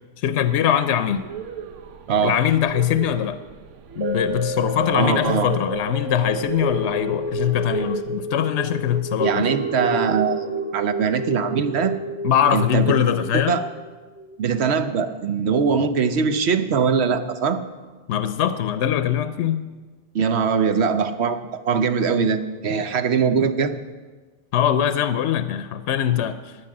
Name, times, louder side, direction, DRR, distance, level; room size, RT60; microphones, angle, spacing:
voice 1, 0.2-1.2 2.2-3.4 4.0-9.4 12.2-13.6 18.1-19.6 24.5-26.6, left 10 dB, 70° left, 11 dB, 0.9 m, -22 dB
sound 1, 1.1-8.0, right 8 dB, 90° right, 1.1 m, -36 dB
sound 2, 4.0-14.4 14.8-14.9, right 2 dB, 15° right, 0.5 m, -29 dB
voice 2, 4.9-5.5 9.2-10.4 10.7-11.9 12.5-12.9 13.3-13.6 14.4-17.6 20.1-23.7, right 6 dB, 65° right, 10 dB, 1.1 m, -21 dB
10.0 x 9.8 x 8.7 m, 1.3 s
omnidirectional pair, 1.2 m